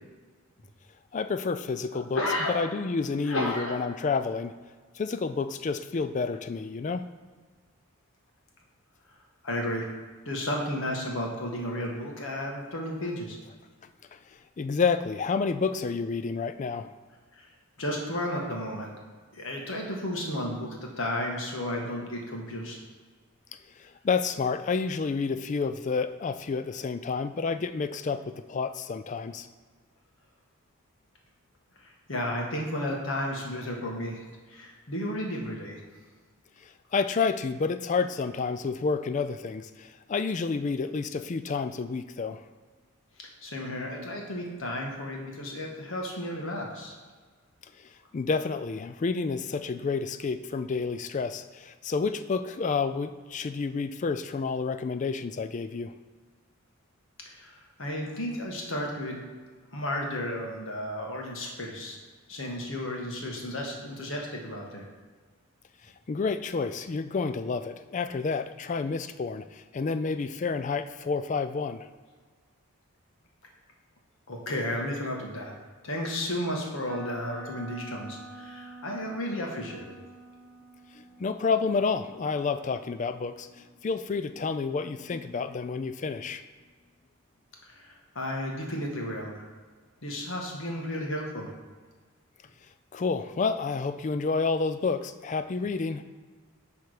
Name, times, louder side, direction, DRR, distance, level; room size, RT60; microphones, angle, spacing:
voice 1, 1.1-2.2 2.5-4.5 4.9-7.0 14.3-16.9 23.8-29.5 36.6-42.4 47.8-56.0 65.8-71.9 80.9-86.4 92.9-96.0, left 4 dB, 35° left, 11 dB, 0.3 m, -30 dB
voice 2, 2.1-2.5 3.2-3.8 9.4-9.9 10.2-13.4 17.3-17.5 17.8-19.0 19.3-22.8 31.8-35.8 43.2-47.0 57.2-59.2 59.7-62.0 62.3-64.8 74.3-75.5 75.8-79.9 87.6-89.4 90.0-91.5, left 1 dB, 60° left, 0 dB, 1.5 m, -33 dB
sound 1, 76.9-84.8, right 2 dB, 45° right, 1.0 m, -48 dB
10.5 x 3.5 x 5.0 m, 1.5 s
head